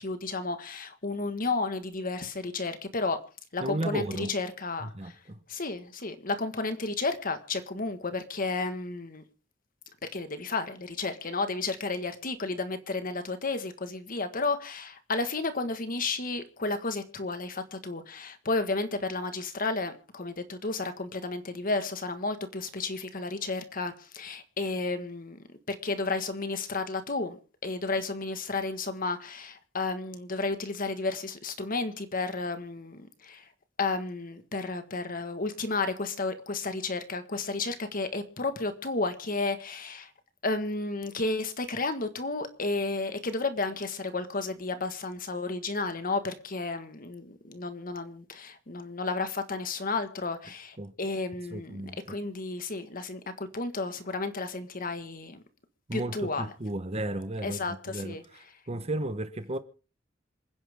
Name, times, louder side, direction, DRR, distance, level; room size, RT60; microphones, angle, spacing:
voice 1, 0.0-3.2 3.5-5.2 5.5-9.2 10.0-33.5 33.8-40.1 40.4-51.8 52.1-55.4 55.9-56.5 57.4-58.2, left 3 dB, 45° left, 1.6 m, -32 dB
voice 2, 3.6-4.3 4.8-5.4 50.8-50.9 51.5-52.2 55.9-57.6 57.9-58.2 58.7-59.6, right 1 dB, 35° right, 1.1 m, -33 dB
27.0 x 10.0 x 3.6 m
head